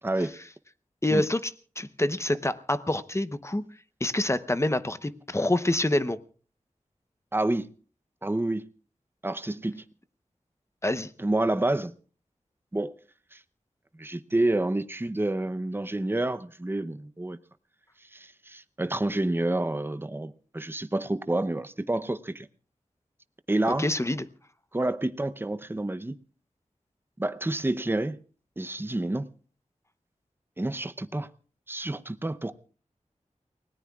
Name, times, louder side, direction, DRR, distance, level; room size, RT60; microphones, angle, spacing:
voice 1, 1.0-1.5 1.8-3.6 4.0-6.2 10.8-11.1 23.8-24.2, left 1 dB, 20° left, 0.8 m, -26 dB
voice 2, 7.3-7.7 8.2-8.7 9.2-9.8 11.2-11.9 12.7-12.9 13.3-13.4 14.0-17.4 18.1-22.5 23.5-23.9 24.7-26.2 27.2-28.2 28.6-29.3 30.6-31.3 31.7-32.5, right 2 dB, 15° right, 0.7 m, -28 dB
29.5 x 18.0 x 2.4 m
wide cardioid pair, 75°, 13 cm